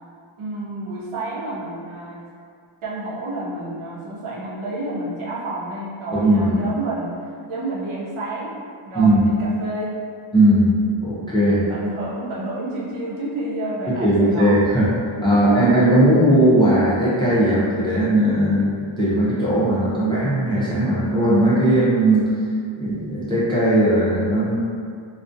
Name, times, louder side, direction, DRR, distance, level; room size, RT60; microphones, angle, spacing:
voice 1, 0.4-2.3 2.8-7.1 7.5-8.5 8.9-10.0 11.5-14.6 15.3-15.6, right 2 dB, 80° right, -6 dB, 0.7 m, -30 dB
voice 2, 6.1-6.6 8.9-9.3 10.3-10.7 11.0-11.6 13.9-14.9 15.2-22.3 22.8-24.6, right 1 dB, 10° left, -10 dB, 0.4 m, -18 dB
2.3 x 2.1 x 2.5 m, 2.2 s
wide cardioid pair, 130°, 48 cm